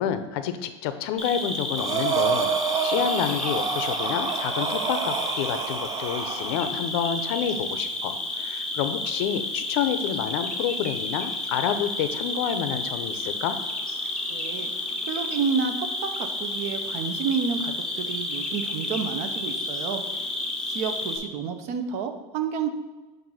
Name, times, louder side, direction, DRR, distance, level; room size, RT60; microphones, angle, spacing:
voice 1, 0.0-2.5 2.8-13.6, left 9 dB, 65° left, 10 dB, 0.6 m, -28 dB
Cricket, 1.2-21.2, left 2 dB, 5° left, 0.7 m, -31 dB
Breathing, 1.8-6.7, right 7 dB, 25° right, 0.4 m, -28 dB
voice 2, 14.3-14.7 15.1-20.0 20.6-22.7, right 6 dB, 50° right, 8 dB, 0.7 m, -30 dB
7.7 x 2.6 x 5.5 m, 1.2 s
supercardioid pair, 150°, 14 cm